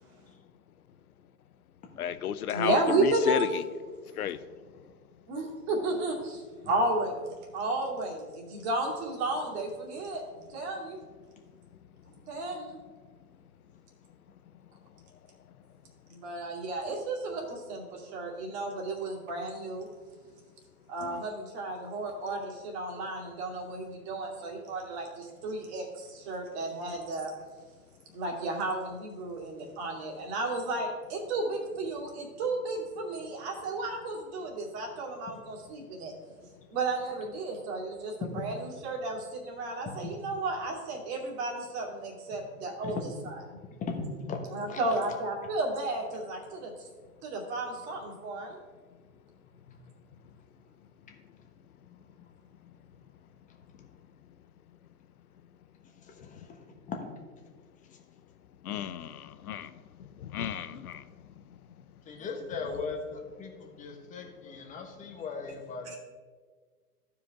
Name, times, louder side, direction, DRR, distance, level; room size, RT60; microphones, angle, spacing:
voice 1, 2.0-3.6 4.2-4.4 21.0-21.2 58.6-59.7 60.2-61.0, left 9 dB, 80° left, 14 dB, 0.7 m, -32 dB
voice 2, 2.5-3.5 5.3-7.2 7.5-11.0 12.1-12.8 16.1-19.9 20.9-27.3 28.1-36.1 36.7-43.0 43.2-43.4 44.5-46.7 47.2-48.6 62.2-62.3 65.8-66.0, right 2 dB, 45° right, 0 dB, 2.5 m, -33 dB
voice 3, 43.8-44.8 49.7-49.8 56.1-57.0 62.0-66.0, left 4 dB, 15° left, 2 dB, 1.2 m, -38 dB
14.5 x 5.1 x 3.5 m, 1.5 s
hypercardioid pair, 125°, 44 cm